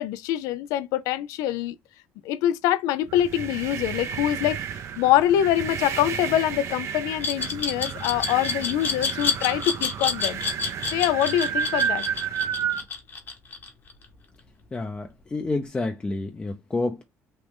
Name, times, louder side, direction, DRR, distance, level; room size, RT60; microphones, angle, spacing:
voice 1, 0.0-1.8 2.2-4.6 5.0-10.4 10.8-12.0, left 12 dB, 80° left, 0.4 m, -24 dB
sound 1, 3.1-12.8, right 8 dB, 55° right, 0.5 m, -31 dB
Glass, 7.2-14.0, left 5 dB, 40° left, 1.0 m, -28 dB
voice 2, 14.7-17.0, left 2 dB, 20° left, 0.5 m, -29 dB
3.1 x 2.5 x 3.4 m
cardioid pair, 105°, 6 cm